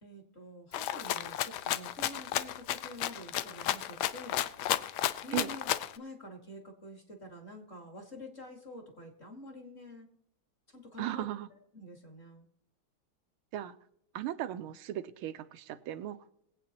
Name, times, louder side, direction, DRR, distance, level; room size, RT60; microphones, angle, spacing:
voice 1, 0.0-4.4 5.2-5.7 6.0-10.1 10.7-11.3 11.7-12.5, left 1 dB, 30° left, 1.7 m, -47 dB
Rattle (instrument), 0.7-6.0, left 12 dB, 90° left, 0.9 m, -33 dB
voice 2, 11.0-11.5 13.5-13.7 14.1-16.2, right 12 dB, 85° right, 1.5 m, -36 dB
21.5 x 8.3 x 2.9 m
omnidirectional pair, 2.3 m